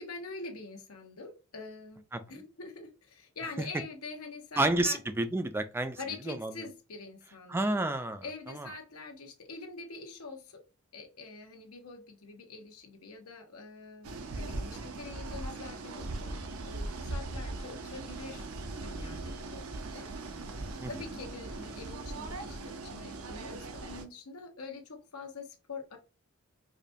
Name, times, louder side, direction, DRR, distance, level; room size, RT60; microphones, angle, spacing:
voice 1, 0.0-2.0 2.3-5.0 6.0-7.8 8.2-10.6 10.9-18.5 18.8-19.7 19.9-20.1 20.8-26.0, left 4 dB, 90° left, 1.0 m, -45 dB
voice 2, 4.6-6.0 6.2-6.6 7.5-8.7 20.8-20.9, right 2 dB, 10° right, 0.3 m, -30 dB
sound 1, 14.0-24.0, right 2 dB, 80° right, 0.6 m, -39 dB
4.9 x 2.2 x 2.6 m
head